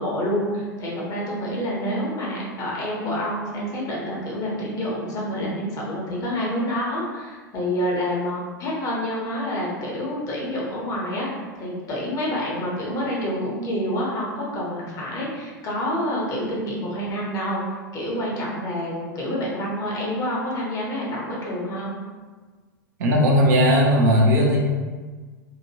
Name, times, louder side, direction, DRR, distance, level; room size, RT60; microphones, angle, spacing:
voice 1, 0.0-21.9, equal, 30° left, -4 dB, 1.0 m, -28 dB
voice 2, 23.0-24.6, equal, 55° right, -1 dB, 0.6 m, -17 dB
2.8 x 2.5 x 2.9 m, 1.4 s
figure-of-eight pair, 90°, 11 cm